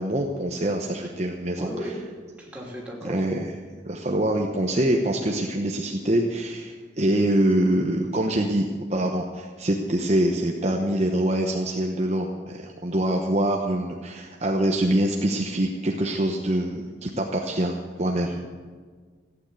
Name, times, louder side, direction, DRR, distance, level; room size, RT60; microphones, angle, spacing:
voice 1, 0.0-1.9 3.0-3.5 3.9-18.3, right 1 dB, 35° right, 1 dB, 1.0 m, -25 dB
voice 2, 1.6-1.9 2.4-3.2 18.2-18.4, equal, 5° right, -3 dB, 3.0 m, -35 dB
15.0 x 9.2 x 7.9 m, 1.5 s
head